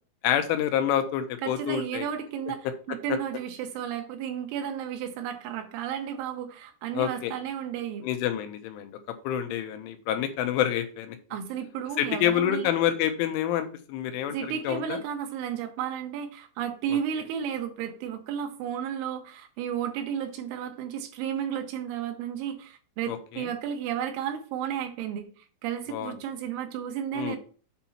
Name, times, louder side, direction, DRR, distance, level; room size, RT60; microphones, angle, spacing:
voice 1, 0.2-2.1 3.1-3.2 6.9-7.3 8.0-8.9 9.2-11.2 12.0-15.0 23.1-23.5 25.9-26.1 27.1-27.4, left 10 dB, 80° left, 8 dB, 3.2 m, -27 dB
voice 2, 1.4-8.0 11.3-12.7 14.3-25.3 25.6-27.4, right 9 dB, 75° right, 5 dB, 3.2 m, -33 dB
8.1 x 4.3 x 5.6 m, 0.41 s
omnidirectional pair, 5.8 m